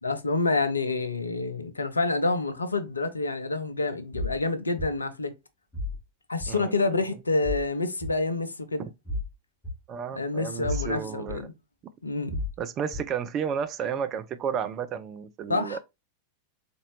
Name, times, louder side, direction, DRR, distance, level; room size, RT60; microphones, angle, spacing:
voice 1, 0.0-5.3 6.3-8.9 10.2-11.5 12.0-12.4 15.5-15.8, left 3 dB, 80° left, 0.5 m, -28 dB
sound 1, 4.1-4.4 4.8-4.9 5.7-6.0 6.4-6.5 7.4-7.6 8.0-8.1 9.1-9.3 9.6-9.7 10.6-10.9 11.3-11.4 12.3-12.5 12.9-13.1, left 2 dB, 5° left, 1.9 m, -31 dB
voice 2, 6.5-6.9 8.8-8.9 9.9-11.5 12.6-15.8, right 7 dB, 30° right, 0.4 m, -32 dB
4.0 x 2.6 x 3.0 m
figure-of-eight pair, 90°, 0 cm